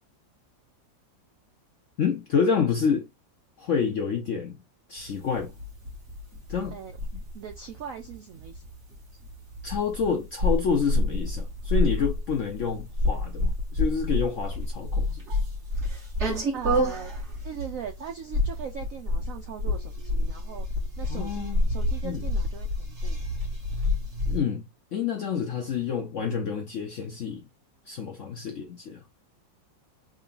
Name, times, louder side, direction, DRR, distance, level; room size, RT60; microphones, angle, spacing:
voice 1, 2.0-3.1 3.6-4.6 4.9-5.6 6.5-6.8 9.6-15.2 21.1-21.6 22.0-22.2 24.3-27.5 27.9-29.0, left 6 dB, 65° left, 0.7 m, -28 dB
sound 1, 5.0-24.4, left 1 dB, 40° right, 1.6 m, -29 dB
voice 2, 7.3-8.6 16.5-17.1 17.4-20.7 21.0-23.2, right 7 dB, 75° right, 0.7 m, -40 dB
3.8 x 2.3 x 3.7 m
omnidirectional pair, 2.0 m